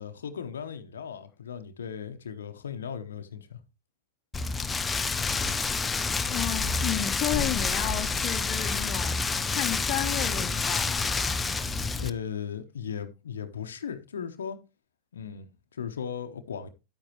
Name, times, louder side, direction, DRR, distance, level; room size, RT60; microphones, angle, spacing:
voice 1, 0.0-3.6 11.6-14.6 15.1-16.7, left 7 dB, 75° left, 0.9 m, -37 dB
Rain, 4.3-12.1, left 4 dB, 15° left, 0.7 m, -28 dB
voice 2, 6.2-9.2 9.5-11.1, left 14 dB, 45° left, 1.0 m, -32 dB
9.7 x 8.9 x 2.9 m
hypercardioid pair, 95°, 0 cm